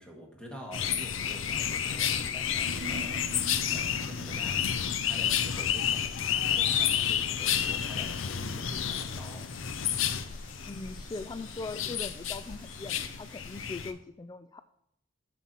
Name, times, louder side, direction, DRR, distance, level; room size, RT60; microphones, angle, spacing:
voice 1, 0.0-4.6 5.0-9.5, equal, 5° left, -1 dB, 1.9 m, -47 dB
sound 1, 0.7-13.9, left 9 dB, 90° left, 0.6 m, -30 dB
sound 2, 1.0-13.9, left 2 dB, 45° left, 2.1 m, -53 dB
Human voice, 2.6-7.3 7.6-7.7, right 2 dB, 70° right, 0.8 m, -46 dB
voice 2, 10.7-14.6, left 3 dB, 20° left, 10 dB, 0.3 m, -40 dB
7.3 x 7.0 x 4.4 m, 0.79 s
head